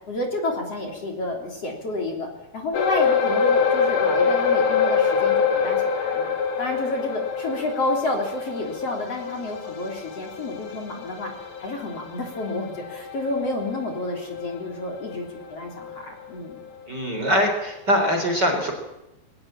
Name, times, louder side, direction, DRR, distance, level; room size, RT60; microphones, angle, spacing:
voice 1, 0.1-11.3 11.6-16.6, left 2 dB, 40° left, 2 dB, 4.2 m, -30 dB
sound 1, 2.7-15.4 15.8-16.0 16.5-16.6, left 6 dB, 70° left, 4.4 m, -25 dB
voice 2, 16.9-18.7, equal, 25° right, 3 dB, 3.9 m, -22 dB
21.5 x 19.5 x 8.8 m, 0.91 s
omnidirectional pair, 4.5 m